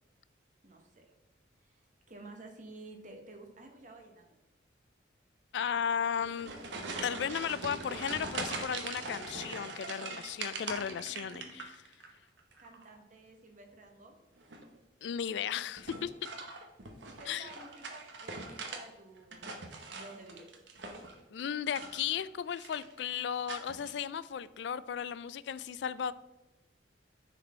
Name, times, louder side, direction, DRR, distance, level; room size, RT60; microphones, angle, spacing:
voice 1, 0.6-1.1 1.6-1.8 2.1-4.2 12.6-14.2 16.2-16.3 17.0-19.5 19.9-20.6, right 2 dB, 40° right, 3 dB, 1.2 m, -52 dB
voice 2, 5.5-6.5 7.0-11.8 15.0-16.1 17.3-17.5 21.3-26.1, left 8 dB, 65° left, 17 dB, 0.3 m, -35 dB
sound 1, 6.1-12.1 12.4-13.0 14.4-14.8 15.8-18.8 19.2-21.2 21.7-22.3 22.5-23.0 23.5-23.9, right 3 dB, 70° right, 0.9 m, -42 dB
9.9 x 4.2 x 4.3 m, 0.99 s
head